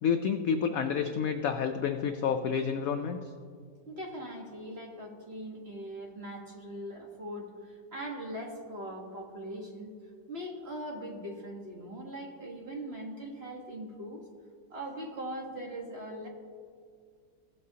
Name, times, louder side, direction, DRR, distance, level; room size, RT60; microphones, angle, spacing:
voice 1, 0.0-3.2, left 7 dB, 75° left, 6 dB, 0.8 m, -29 dB
voice 2, 3.9-9.9 10.3-14.2 14.7-16.3, right 1 dB, 40° right, 0 dB, 1.3 m, -41 dB
17.0 x 7.5 x 2.8 m, 2.1 s
omnidirectional pair, 2.0 m